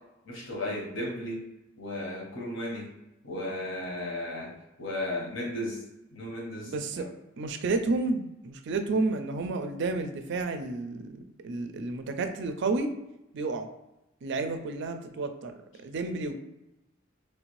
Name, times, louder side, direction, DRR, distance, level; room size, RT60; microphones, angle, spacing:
voice 1, 0.2-1.4 1.8-2.9 3.2-4.5 4.8-5.8 6.1-7.0, left 1 dB, 70° left, -2 dB, 1.1 m, -35 dB
voice 2, 6.7-7.1 7.4-12.9 13.3-13.7 14.2-15.5 15.8-16.4, right 3 dB, 60° right, 7 dB, 0.4 m, -31 dB
3.2 x 2.5 x 3.1 m, 0.94 s
head